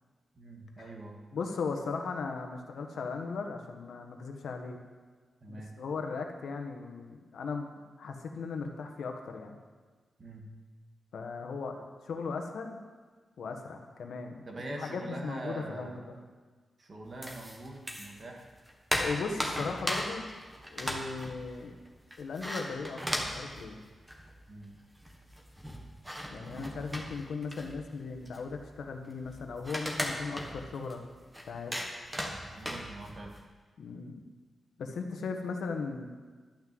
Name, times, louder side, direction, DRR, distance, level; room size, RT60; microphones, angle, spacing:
voice 1, 0.4-1.2 5.4-5.8 10.2-10.5 14.5-16.1 16.8-18.5 24.5-24.7 32.5-33.4, right 2 dB, 40° right, 1 dB, 1.8 m, -43 dB
voice 2, 1.3-4.8 5.6-7.7 8.0-9.6 11.1-11.8 12.0-12.8 13.4-14.4 14.7-16.2 18.9-20.2 20.7-21.8 22.2-23.8 26.3-31.0 31.4-31.8 33.8-34.2 34.8-36.1, left 4 dB, 85° left, 4 dB, 1.2 m, -37 dB
sound 1, 17.2-18.2 18.5-24.4 24.7-24.8 25.0-33.4, equal, 5° right, 1.4 m, -37 dB
12.0 x 6.1 x 7.6 m, 1.5 s
wide cardioid pair, 120°, 0 cm